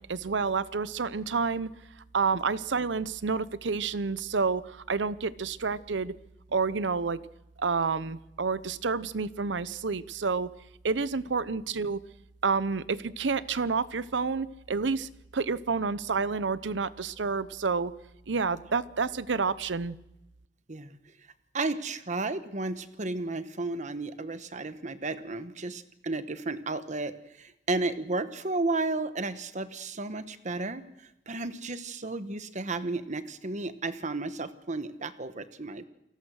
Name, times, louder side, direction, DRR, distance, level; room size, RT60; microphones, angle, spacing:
voice 1, 0.0-1.7 2.1-6.1 6.5-7.2 7.6-10.5 10.8-12.0 12.4-17.9 18.3-20.0, right 4 dB, 80° right, 17 dB, 0.8 m, -29 dB
voice 2, 21.5-30.8 31.3-35.8, right 3 dB, 40° right, 11 dB, 1.2 m, -33 dB
29.0 x 18.5 x 6.4 m, 0.91 s
head